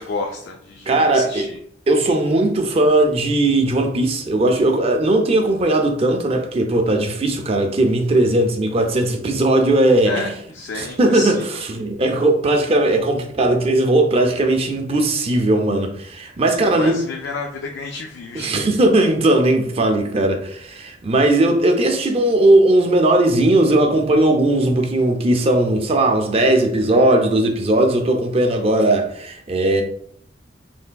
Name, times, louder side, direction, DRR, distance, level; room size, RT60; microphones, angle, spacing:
voice 1, 0.0-1.6 10.0-10.3 10.5-11.4 16.5-18.6, left 3 dB, 75° left, 0.3 m, -30 dB
voice 2, 0.9-1.5 1.9-10.3 10.7-17.0 18.3-29.8, right 1 dB, 35° right, 0.4 m, -18 dB
3.3 x 2.5 x 2.2 m
head